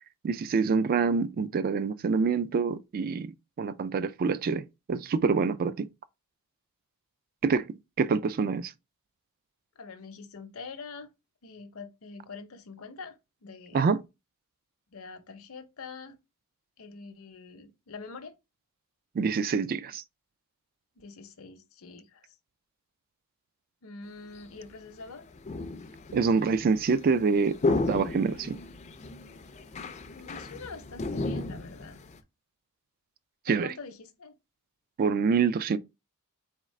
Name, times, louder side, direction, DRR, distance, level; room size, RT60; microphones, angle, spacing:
voice 1, 0.2-5.9 7.4-8.7 13.7-14.0 19.2-20.0 26.1-28.6 33.5-33.7 35.0-35.8, right 5 dB, 40° right, 0.3 m, -26 dB
voice 2, 9.8-11.1 11.4-13.9 14.9-16.2 16.8-18.3 21.0-22.4 23.8-25.3 30.1-32.0 33.4-34.3, left 4 dB, 65° left, 0.7 m, -45 dB
sound 1, 24.4-24.5 25.0-32.2, left 2 dB, 30° left, 0.4 m, -34 dB
4.0 x 3.6 x 3.1 m
head